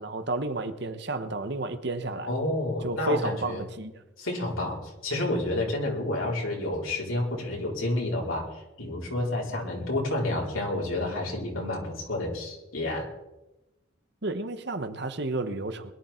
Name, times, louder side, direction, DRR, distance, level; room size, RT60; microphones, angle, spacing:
voice 1, 0.0-2.3 2.8-3.9 14.2-15.9, right 2 dB, 55° right, 9 dB, 1.2 m, -31 dB
voice 2, 2.2-3.6 4.2-13.1, left 1 dB, 90° left, -2 dB, 4.5 m, -30 dB
21.5 x 11.5 x 4.5 m, 0.99 s
head